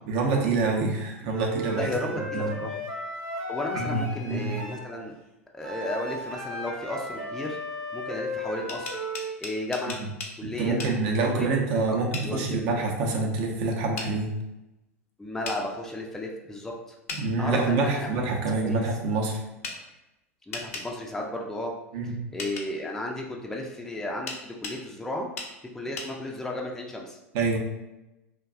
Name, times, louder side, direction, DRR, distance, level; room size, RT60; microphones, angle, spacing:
voice 1, 0.1-2.6 3.7-4.5 10.6-14.3 17.2-19.4 21.9-22.1 27.3-27.6, right 3 dB, 55° right, 1 dB, 0.6 m, -26 dB
Wind instrument woodwind instrument, 1.3-4.8 5.6-9.4, equal, 35° right, 0.9 m, -35 dB
voice 2, 1.7-2.8 3.5-5.1 5.5-7.6 7.9-8.9 9.4-10.0 10.4-10.8 11.2-11.5 11.9-12.7 15.2-17.0 17.4-18.1 18.6-18.8 20.5-21.7 22.0-25.3 25.7-27.2, left 1 dB, 5° left, -1 dB, 0.3 m, -34 dB
sound 1, 8.5-10.3 10.8-10.9 12.1-12.3 14.0-14.1 15.4-15.6 17.1-17.2 19.6-19.8 20.5-20.9 22.4-22.7 24.3-24.8 25.4-25.5 26.0-26.1, left 4 dB, 70° left, 0.5 m, -36 dB
2.6 x 2.2 x 2.3 m, 0.96 s
figure-of-eight pair, 85°, 8 cm